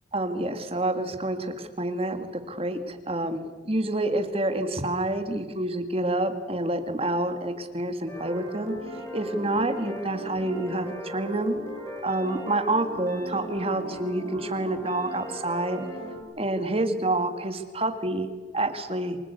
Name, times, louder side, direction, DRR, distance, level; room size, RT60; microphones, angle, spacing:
voice 1, 0.1-8.7 9.1-11.6 12.0-15.9 16.4-19.2, right 1 dB, 30° right, 7 dB, 2.0 m, -28 dB
sound 1, 8.1-16.2, right 1 dB, 15° left, 7.6 m, -38 dB
27.5 x 20.0 x 8.3 m, 1.4 s
head